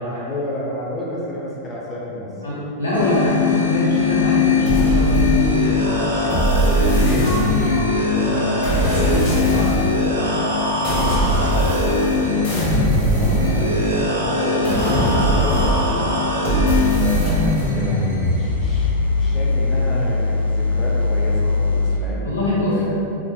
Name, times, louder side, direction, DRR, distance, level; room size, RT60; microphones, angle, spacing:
voice 1, 0.0-2.3 9.0-10.1 10.4-16.0 16.9-22.3 22.7-23.1, left 1 dB, 20° left, -6 dB, 0.5 m, -30 dB
voice 2, 2.4-5.8 6.7-7.7 8.2-8.5 9.5-9.7 22.2-22.8, left 1 dB, 80° left, -8 dB, 0.8 m, -23 dB
sound 1, 2.9-22.0, left 3 dB, 75° right, 0.5 m, -21 dB
sound 2, 4.0-9.1, right 2 dB, 65° left, 1.3 m, -34 dB
sound 3, 4.7-5.8 6.3-7.9 8.6-10.0 10.8-12.2 12.4-14.0 14.6-16.0 16.4-17.7, right 1 dB, 45° left, 1.0 m, -21 dB
3.4 x 2.4 x 2.3 m, 2.7 s
figure-of-eight pair, 90°, 0 cm